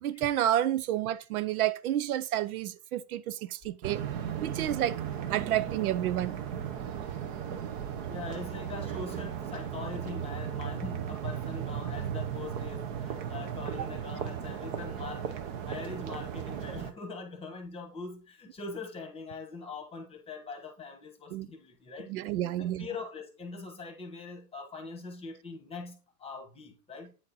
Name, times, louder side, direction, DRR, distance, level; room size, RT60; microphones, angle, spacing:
voice 1, 0.0-4.0 4.4-5.0 5.3-6.3 21.3-21.5 22.1-22.9, right 12 dB, 65° right, 0.8 m, -30 dB
sound 1, 3.8-16.9, right 8 dB, 35° right, 0.8 m, -36 dB
voice 2, 8.1-22.1 22.6-27.1, left 4 dB, 10° left, 1.2 m, -42 dB
8.8 x 4.3 x 4.2 m
supercardioid pair, 150°, 47 cm